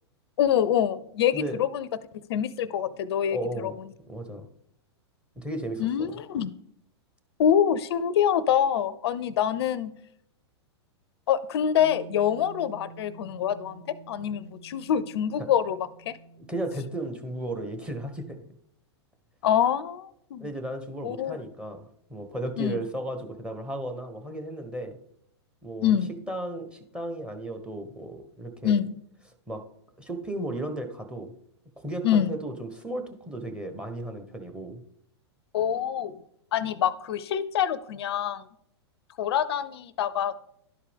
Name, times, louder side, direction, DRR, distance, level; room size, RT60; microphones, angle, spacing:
voice 1, 0.4-1.9 2.3-3.7 5.8-6.5 7.4-9.9 11.3-16.1 19.4-20.5 21.0-21.4 22.6-22.8 25.8-26.1 28.6-28.9 32.0-32.3 35.5-36.2 36.5-38.4 39.2-40.3, left 9 dB, 65° left, 16 dB, 0.5 m, -25 dB
voice 2, 3.3-3.8 4.1-4.5 5.4-6.1 15.4-15.5 16.5-18.4 20.4-25.0 25.6-25.9 26.3-28.8 29.5-29.6 30.0-31.3 31.8-34.8, right 1 dB, 5° right, 8 dB, 1.0 m, -35 dB
Bass guitar, 11.8-18.0, right 3 dB, 45° right, 1.0 m, -49 dB
11.5 x 4.8 x 3.4 m, 0.72 s
hypercardioid pair, 110°, 14 cm